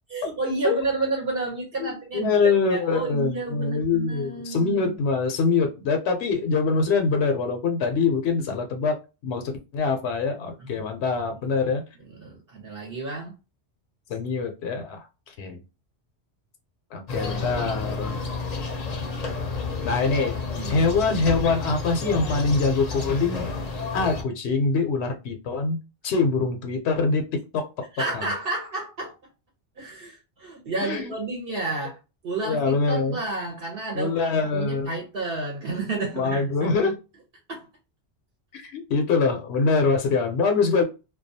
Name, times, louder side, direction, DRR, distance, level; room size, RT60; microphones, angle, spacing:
voice 1, 0.1-4.8 10.6-10.8 12.2-13.3 19.8-19.9 20.5-20.8 27.9-29.1 29.8-32.0 32.2-36.7 37.5-37.7, right 3 dB, 60° right, -1 dB, 0.9 m, -31 dB
voice 2, 1.8-9.0 9.2-11.8 14.1-15.6 16.9-18.2 19.8-20.4 20.7-23.5 23.9-27.9 28.1-28.2 30.8-31.1 32.4-33.2 33.9-35.0 36.1-36.9 38.5-40.8, left 4 dB, 80° left, 5 dB, 0.8 m, -24 dB
sound 1, 17.1-24.2, left 3 dB, 50° left, 0.6 m, -30 dB
2.3 x 2.2 x 2.6 m, 0.29 s
omnidirectional pair, 1.1 m